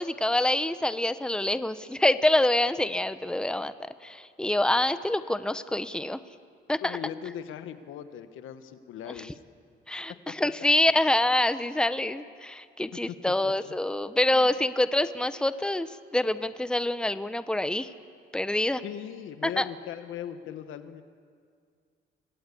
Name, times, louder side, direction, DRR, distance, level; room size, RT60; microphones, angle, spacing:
voice 1, 0.0-6.2 6.7-7.0 9.9-17.9 18.3-18.8 19.6-19.7, left 1 dB, 5° left, 12 dB, 0.9 m, -26 dB
voice 2, 6.8-9.4 10.4-10.7 12.9-13.2 13.4-13.5 14.3-14.5 18.8-21.0, left 9 dB, 85° left, 10 dB, 1.3 m, -39 dB
26.0 x 19.0 x 8.5 m, 2.2 s
cardioid pair, 90°, 20 cm